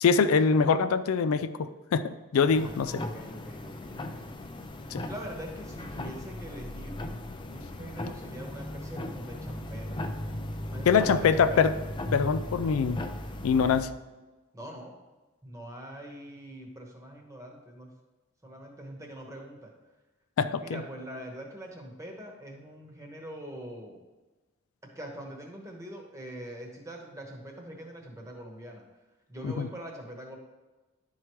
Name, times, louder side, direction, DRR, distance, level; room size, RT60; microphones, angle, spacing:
voice 1, 0.0-3.0 4.9-5.0 10.9-11.7 12.1-13.0 13.4-13.9 20.4-20.8 29.4-29.7, left 5 dB, 85° left, 11 dB, 0.4 m, -24 dB
sound 1, 2.5-13.8, left 1 dB, 20° left, 0.4 m, -37 dB
voice 2, 2.5-4.3 4.8-7.0 7.5-10.0 10.7-11.7 14.5-15.0 15.4-17.9 18.4-19.7 20.6-24.0 24.9-28.8 29.3-30.4, right 1 dB, 15° right, 0 dB, 1.1 m, -43 dB
11.0 x 4.7 x 3.1 m, 1.2 s
head